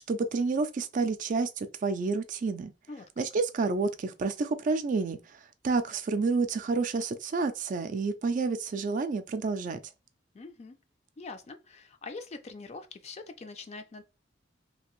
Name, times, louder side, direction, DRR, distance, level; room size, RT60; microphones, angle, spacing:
voice 1, 0.1-2.7 3.2-5.2 5.6-9.8, right 4 dB, 45° right, 0.3 m, -29 dB
voice 2, 10.3-10.8 11.2-14.0, left 3 dB, 35° left, 0.4 m, -43 dB
2.8 x 2.5 x 3.0 m
head